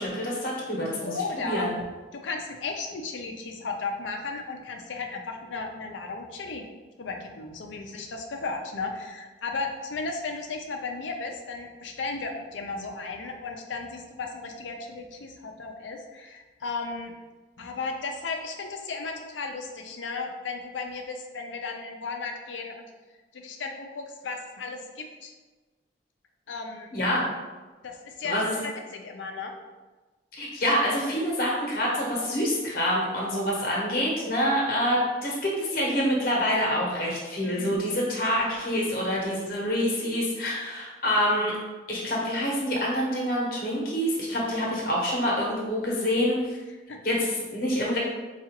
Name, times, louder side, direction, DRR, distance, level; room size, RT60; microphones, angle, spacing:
voice 1, 0.0-1.7 26.9-27.2 28.2-28.6 30.3-41.5 41.9-46.5 47.0-48.0, equal, 50° left, -3 dB, 0.9 m, -26 dB
voice 2, 1.0-1.7 2.1-6.7 7.0-17.1 17.6-22.8 23.3-25.3 26.5-26.9 27.8-29.5 37.4-37.8 46.9-47.0, left 4 dB, 85° left, 3 dB, 0.5 m, -35 dB
4.6 x 2.4 x 2.9 m, 1.3 s
head